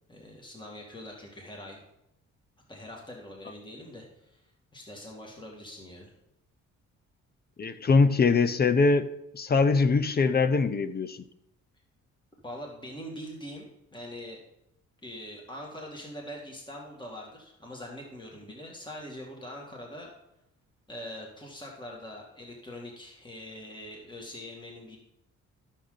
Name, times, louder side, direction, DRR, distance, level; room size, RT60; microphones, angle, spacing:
voice 1, 0.1-1.8 2.7-6.1 12.4-13.7 13.9-14.4 15.0-20.1 20.9-25.0, left 1 dB, 15° left, -1 dB, 2.3 m, -43 dB
voice 2, 7.6-9.1 9.3-11.2, left 4 dB, 30° left, 13 dB, 0.7 m, -22 dB
13.0 x 6.5 x 4.0 m, 0.81 s
cardioid pair, 90°, 30 cm